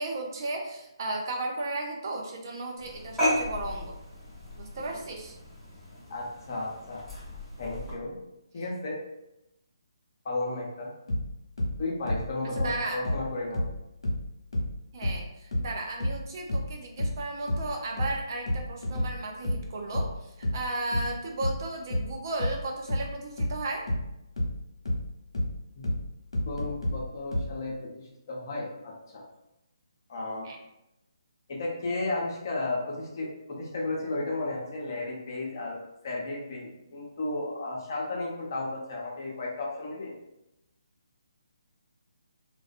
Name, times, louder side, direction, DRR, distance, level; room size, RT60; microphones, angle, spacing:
voice 1, 0.0-3.9 4.6-5.4 12.5-13.0 14.9-23.9 30.4-30.6, right 2 dB, 45° right, 1 dB, 0.5 m, -35 dB
sound 1, 2.8-7.9, equal, ahead, 0.9 m, -34 dB
voice 2, 6.1-7.1 7.6-8.2 8.5-9.0 10.2-10.9 11.8-13.7 25.7-25.9 26.5-29.2 30.1-30.5 31.5-40.1, left 2 dB, 45° left, -3 dB, 0.6 m, -34 dB
sound 2, 11.1-14.3 14.5-27.6, left 1 dB, 70° left, 0.9 m, -30 dB
2.4 x 2.2 x 2.5 m, 0.89 s
figure-of-eight pair, 145°, 3 cm